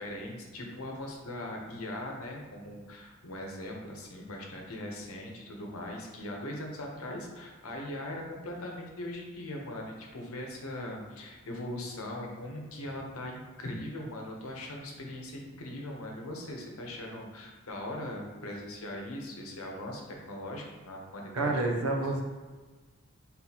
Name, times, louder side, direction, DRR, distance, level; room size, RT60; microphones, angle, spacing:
voice 1, 0.0-21.6, left 1 dB, 80° left, 0 dB, 0.9 m, -40 dB
voice 2, 21.3-22.2, right 2 dB, 90° right, 2 dB, 0.7 m, -28 dB
4.1 x 3.8 x 2.9 m, 1.3 s
head